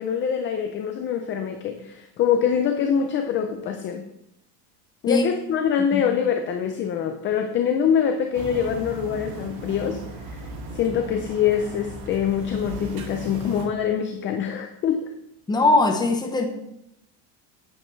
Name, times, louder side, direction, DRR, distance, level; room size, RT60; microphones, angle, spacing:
voice 1, 0.0-4.1 5.0-10.5 10.7-15.1, left 8 dB, 25° left, 5 dB, 0.4 m, -24 dB
sound 1, 8.3-13.7, right 2 dB, 80° right, 2.1 m, -37 dB
voice 2, 15.5-16.5, left 2 dB, 10° left, 3 dB, 0.8 m, -20 dB
9.5 x 8.9 x 3.2 m, 0.83 s
cardioid pair, 160°, 47 cm